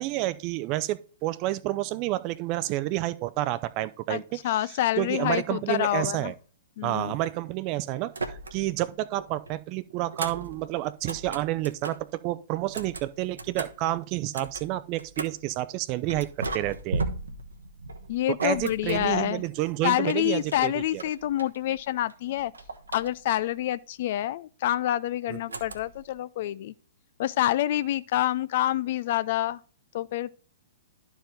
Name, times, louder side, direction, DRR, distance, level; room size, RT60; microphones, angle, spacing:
voice 1, 0.0-4.4 5.0-6.3 6.8-17.0 18.3-21.0 25.3-25.6, right 16 dB, 35° right, 0.5 m, -30 dB
voice 2, 4.1-6.3 6.8-7.1 18.1-19.4 19.8-22.5 22.9-26.7 27.2-29.6 29.9-30.3, left 13 dB, 50° left, 0.4 m, -27 dB
sound 1, 8.1-8.8 9.1-12.1 12.6-15.5 16.1-19.7 20.0-21.8 22.1-23.5 25.5-26.1, right 3 dB, 75° right, 1.2 m, -37 dB
11.5 x 4.7 x 3.7 m
figure-of-eight pair, 115°, 0 cm